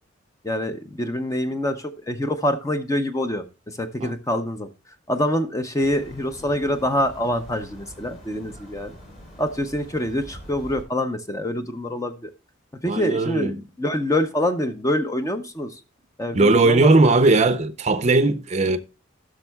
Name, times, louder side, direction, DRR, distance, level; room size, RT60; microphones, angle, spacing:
voice 1, 0.4-4.7 5.1-8.9 9.4-12.3 12.8-15.8 16.2-16.9, left 1 dB, 15° left, 0.5 m, -25 dB
sound 1, 5.8-10.8, equal, 40° left, 3.5 m, -44 dB
voice 2, 12.9-13.6 16.3-18.8, right 2 dB, 35° right, 0.5 m, -18 dB
16.5 x 6.2 x 2.2 m
head